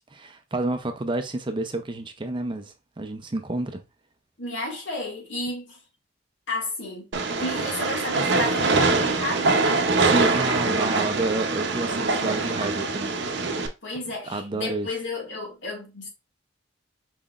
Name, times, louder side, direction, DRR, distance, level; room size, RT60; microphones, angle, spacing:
voice 1, 0.0-3.8 10.0-13.4 14.3-14.9, right 2 dB, 25° right, 0.5 m, -30 dB
voice 2, 4.4-5.8 6.5-9.9 10.2-10.6 13.8-16.1, left 2 dB, 80° left, 1.9 m, -32 dB
Train, 7.1-13.7, right 3 dB, 65° right, 0.7 m, -23 dB
5.0 x 3.8 x 2.4 m
head